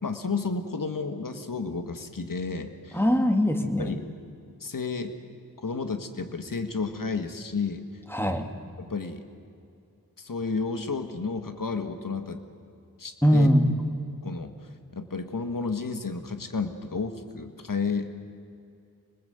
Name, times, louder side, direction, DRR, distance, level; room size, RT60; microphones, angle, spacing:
voice 1, 0.0-3.0 3.8-4.0 4.6-5.1 5.6-7.9 8.8-9.2 10.2-12.4 13.0-13.5 14.2-14.5 14.9-18.1, left 4 dB, 70° left, 7 dB, 1.8 m, -31 dB
voice 2, 2.9-4.0 8.1-8.4 13.2-13.7, equal, 5° left, 5 dB, 2.3 m, -21 dB
27.5 x 20.0 x 8.0 m, 2.5 s
wide cardioid pair, 65°, 34 cm